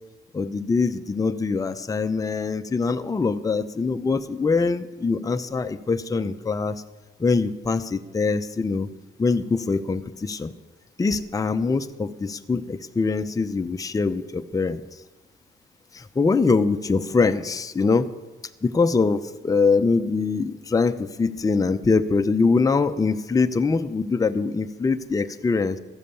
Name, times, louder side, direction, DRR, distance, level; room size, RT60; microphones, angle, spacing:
voice 1, 0.3-6.8 7.2-8.9 9.2-10.5 11.0-14.8 15.9-18.1 18.6-25.8, left 4 dB, 15° left, 9 dB, 0.6 m, -23 dB
13.5 x 7.4 x 6.9 m, 1.1 s
cardioid pair, 90°, 20 cm